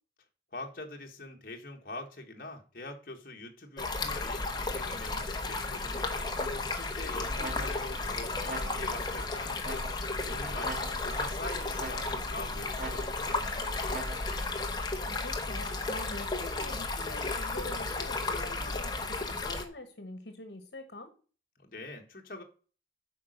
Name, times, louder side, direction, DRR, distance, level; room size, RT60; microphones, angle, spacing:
voice 1, 0.5-9.8 10.3-10.7 11.0-14.0 21.6-22.4, left 2 dB, 50° left, 1 dB, 1.6 m, -44 dB
Stream, 3.8-19.6, left 3 dB, 25° left, 1.1 m, -34 dB
sound 1, 6.4-6.9 7.4-8.0 8.4-9.1 9.6-10.2 10.6-11.3 11.8-12.4 12.8-13.4 13.9-14.5, right 2 dB, 45° right, 3.6 m, -43 dB
voice 2, 15.1-21.1, left 2 dB, 75° left, 8 dB, 1.3 m, -45 dB
8.5 x 5.3 x 6.5 m, 0.38 s
head